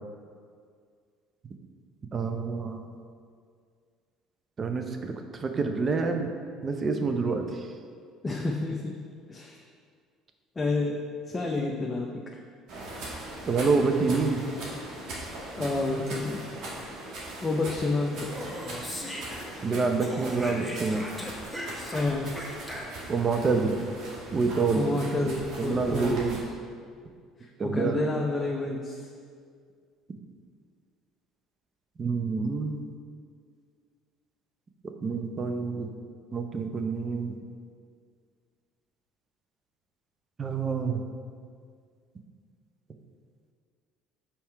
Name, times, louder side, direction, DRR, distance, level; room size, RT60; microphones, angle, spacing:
voice 1, 2.1-2.8 4.6-6.3 6.6-7.7 13.4-14.4 19.6-21.1 23.1-23.8 24.3-25.0 25.6-26.4 27.6-28.0 32.0-32.9 35.0-35.9 36.3-37.4 40.4-41.0, right 4 dB, 35° right, 5 dB, 0.7 m, -27 dB
voice 2, 8.2-9.0 9.3-9.6 10.6-11.0 11.3-12.3 15.6-16.5 17.4-18.4 21.9-22.3 24.7-26.2 27.6-29.0, left 2 dB, 25° left, 0 dB, 0.6 m, -29 dB
sound 1, 12.7-26.4, right 1 dB, 65° right, 1.6 m, -40 dB
Speech, 18.1-19.7 20.0-23.2, left 1 dB, ahead, 1.2 m, -39 dB
5.6 x 4.3 x 4.5 m, 2.1 s
hypercardioid pair, 75°, 0 cm